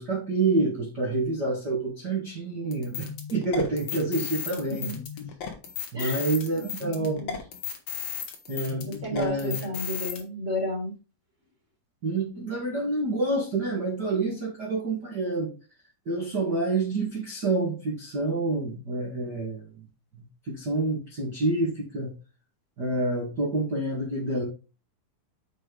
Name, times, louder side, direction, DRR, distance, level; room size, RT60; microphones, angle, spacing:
voice 1, 0.0-5.0 5.9-7.2 8.5-9.7 12.0-15.5 16.0-19.8 20.1-22.1 22.8-24.4, right 2 dB, 55° right, -2 dB, 1.2 m, -28 dB
sound 1, 2.7-10.2, left 8 dB, 90° left, 1.4 m, -35 dB
voice 2, 4.5-5.0 5.9-6.2 6.8-7.4 8.7-10.9, left 1 dB, 20° right, -1 dB, 2.9 m, -33 dB
6.6 x 6.6 x 3.9 m, 0.32 s
omnidirectional pair, 5.0 m